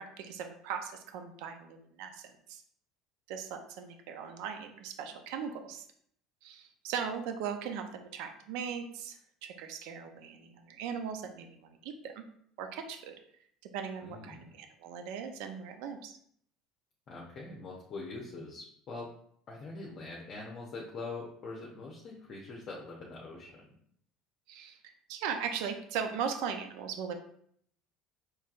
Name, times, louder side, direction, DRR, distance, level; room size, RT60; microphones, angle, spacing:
voice 1, 0.0-2.6 3.3-5.9 6.4-12.2 12.6-13.1 13.7-16.2 24.5-27.2, right 7 dB, 75° right, 6 dB, 0.6 m, -39 dB
voice 2, 14.0-14.6 17.1-19.1 19.5-23.6, left 3 dB, 45° left, -3 dB, 0.8 m, -43 dB
4.4 x 3.2 x 2.5 m, 0.66 s
supercardioid pair, 100°, 0 cm